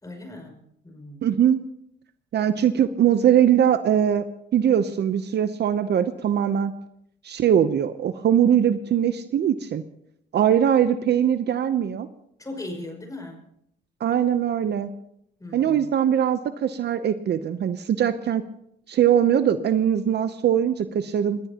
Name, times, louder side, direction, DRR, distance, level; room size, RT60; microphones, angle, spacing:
voice 1, 0.0-0.6 0.8-1.3 12.4-13.4 15.4-15.9, left 2 dB, 15° left, 2 dB, 5.5 m, -38 dB
voice 2, 1.2-1.6 2.3-4.3 4.5-6.7 7.2-9.8 10.3-12.1 14.0-14.9 15.5-18.4 18.9-21.4, right 9 dB, 60° right, 11 dB, 0.7 m, -21 dB
22.0 x 18.5 x 2.9 m, 0.75 s
cardioid pair, 90°, 20 cm